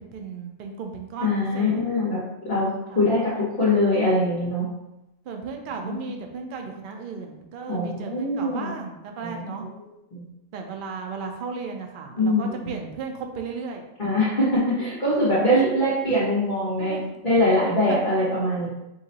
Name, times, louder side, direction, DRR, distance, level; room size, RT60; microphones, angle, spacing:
voice 1, 0.0-1.8 2.9-3.1 5.2-9.6 10.5-13.8 15.5-15.8 16.8-17.1 17.9-18.2, right 5 dB, 85° right, 3 dB, 0.4 m, -35 dB
voice 2, 1.2-2.2 2.4-4.6 5.8-5.9 7.7-8.7 9.2-9.6 10.1-10.2 12.2-12.7 14.0-17.0 17.2-18.7, left 1 dB, 40° left, -12 dB, 1.4 m, -23 dB
5.2 x 2.9 x 2.8 m, 0.91 s
omnidirectional pair, 1.5 m